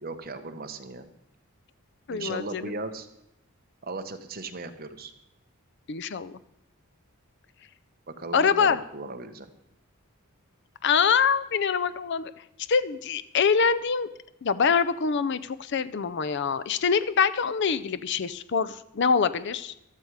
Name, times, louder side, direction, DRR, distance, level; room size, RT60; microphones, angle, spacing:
voice 1, 0.0-1.1 2.1-3.1 3.8-5.1 8.2-9.5, right 3 dB, 40° right, 7 dB, 1.1 m, -37 dB
voice 2, 2.1-2.7 5.9-6.3 8.3-8.8 10.8-12.3 12.7-14.1 14.4-19.7, left 6 dB, 50° left, 15 dB, 0.5 m, -24 dB
14.5 x 12.0 x 4.8 m, 0.83 s
head